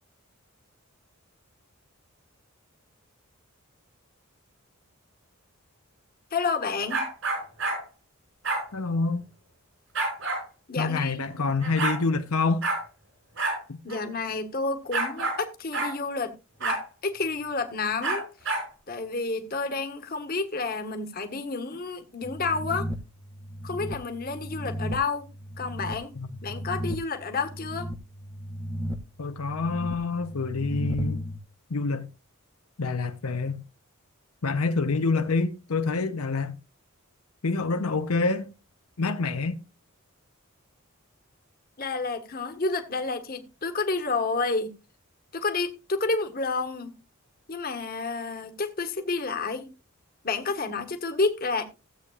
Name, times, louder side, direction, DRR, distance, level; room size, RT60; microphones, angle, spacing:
voice 1, 6.3-7.0 10.7-11.2 13.8-16.3 16.6-18.6 18.9-22.9 23.6-25.3 25.6-26.1 26.4-27.9 41.8-44.7 45.3-46.9 47.5-49.7 50.2-51.6, left 3 dB, 45° left, 1.5 m, -30 dB
sound 1, 6.9-7.8 8.4-8.6 9.9-10.4 11.3-11.4 11.6-12.0 12.6-12.8 13.4-13.6 13.9-14.0 14.9-15.4 15.7-15.9 16.6-16.8 18.0-18.7, right 3 dB, 60° right, 5.9 m, -28 dB
voice 2, 8.7-9.2 10.8-12.6 13.7-13.8 26.2-26.3 29.2-31.3 31.7-32.1 32.8-33.6 34.4-36.6 37.4-38.5 39.0-39.6, left 3 dB, 85° left, 0.8 m, -27 dB
sound 2, 22.2-31.4, equal, 20° right, 1.0 m, -35 dB
16.5 x 8.3 x 2.4 m
head